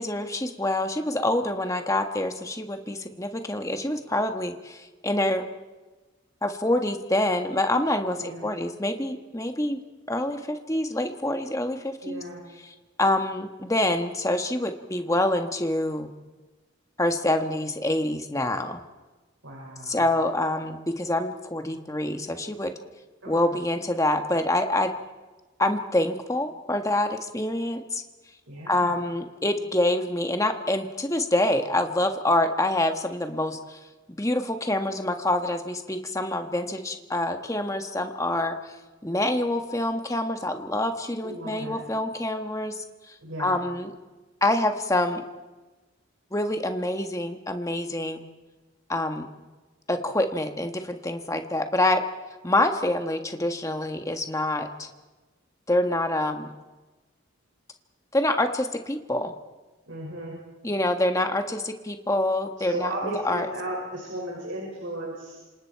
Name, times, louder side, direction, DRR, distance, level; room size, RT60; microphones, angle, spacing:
voice 1, 0.0-5.4 6.4-9.8 10.1-12.2 12.7-16.1 17.0-18.8 19.8-22.7 23.3-24.9 25.6-28.0 28.7-33.8 34.1-38.7 39.0-43.9 44.4-45.2 46.3-48.2 48.9-49.3 49.9-52.0 52.4-54.9 55.7-56.5 58.1-59.3 60.6-63.5, left 1 dB, 15° left, 6 dB, 1.4 m, -26 dB
voice 2, 12.0-12.4 19.4-20.0 23.2-23.6 28.5-29.1 41.2-41.8 43.2-43.6 59.9-60.3 62.6-65.4, right 1 dB, 65° right, -3 dB, 6.0 m, -35 dB
27.5 x 26.5 x 4.6 m, 1.2 s
head